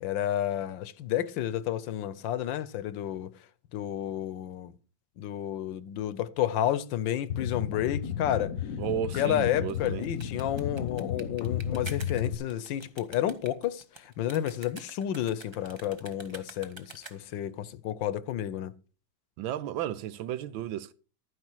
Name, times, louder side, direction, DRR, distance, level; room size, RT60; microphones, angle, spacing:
voice 1, 0.0-3.3 3.7-4.7 5.2-8.5 9.2-18.7, left 11 dB, 75° left, 1.4 m, -31 dB
sound 1, 7.3-12.3, left 8 dB, 55° left, 1.1 m, -33 dB
voice 2, 8.8-10.0 19.4-20.9, right 11 dB, 90° right, 1.5 m, -33 dB
sound 2, 9.6-17.4, right 2 dB, 25° right, 0.6 m, -48 dB
11.5 x 9.7 x 4.6 m
omnidirectional pair, 2.1 m